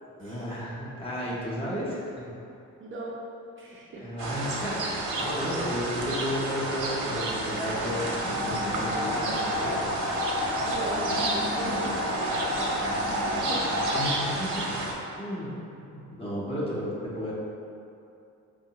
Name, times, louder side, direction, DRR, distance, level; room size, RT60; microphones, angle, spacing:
voice 1, 0.1-2.3 4.0-9.8 13.9-14.7 15.2-15.5 15.7-17.3, equal, 20° left, -8 dB, 0.9 m, -33 dB
voice 2, 2.8-3.2 3.6-4.1 9.4-9.6 10.6-12.8 13.3-13.8, right 2 dB, 45° right, -4 dB, 0.5 m, -39 dB
sound 1, 4.2-14.9, right 2 dB, 80° right, 0.6 m, -31 dB
sound 2, 7.5-14.0, left 1 dB, 55° left, 0.8 m, -31 dB
4.5 x 2.1 x 2.9 m, 2.6 s
cardioid pair, 90°, 30 cm